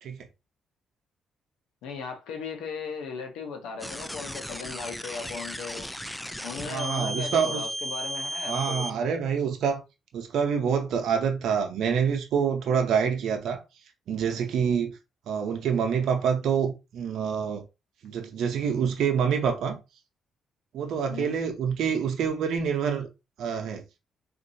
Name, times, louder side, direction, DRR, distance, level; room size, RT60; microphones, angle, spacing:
voice 1, 1.8-5.9 6.4-8.9 21.1-21.4, left 5 dB, 90° left, 0.8 m, -37 dB
sound 1, 3.8-8.9, equal, 5° left, 0.3 m, -35 dB
voice 2, 6.6-7.7 8.5-9.8 10.1-13.6 14.1-14.9 15.3-17.6 18.0-19.8 20.7-23.1 23.4-23.8, right 7 dB, 75° right, 0.7 m, -26 dB
3.8 x 2.6 x 2.6 m
cardioid pair, 90°, 0 cm